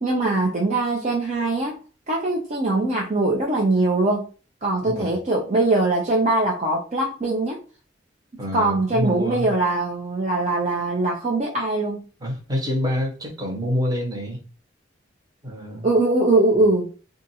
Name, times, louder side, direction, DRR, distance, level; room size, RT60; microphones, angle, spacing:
voice 1, 0.0-1.8 2.1-4.3 4.6-7.6 8.5-12.0 15.8-16.9, right 2 dB, 40° right, -2 dB, 0.7 m, -22 dB
voice 2, 4.8-5.1 8.4-9.5 12.2-14.4 15.4-15.9, equal, 20° right, 0 dB, 1.1 m, -27 dB
2.5 x 2.5 x 4.1 m, 0.33 s
head